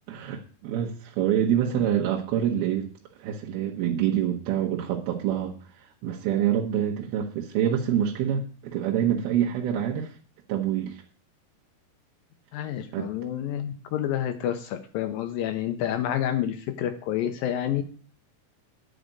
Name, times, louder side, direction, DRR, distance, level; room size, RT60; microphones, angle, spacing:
voice 1, 0.1-2.9 3.2-10.1 10.5-11.0 12.9-13.1, right 10 dB, 75° right, -1 dB, 2.9 m, -26 dB
voice 2, 12.5-17.8, left 10 dB, 80° left, 8 dB, 2.2 m, -29 dB
10.0 x 5.1 x 8.0 m, 0.41 s
omnidirectional pair, 4.7 m